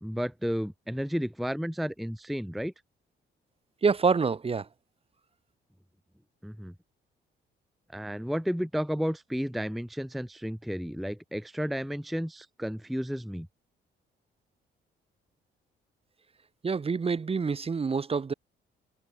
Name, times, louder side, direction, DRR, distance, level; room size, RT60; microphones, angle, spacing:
voice 1, 0.0-2.7 6.4-6.7 7.9-13.5, equal, ahead, 0.6 m, -32 dB
voice 2, 3.8-4.7 16.6-18.3, right 5 dB, 30° right, 1.0 m, -26 dB
cardioid pair, 90°, 20 cm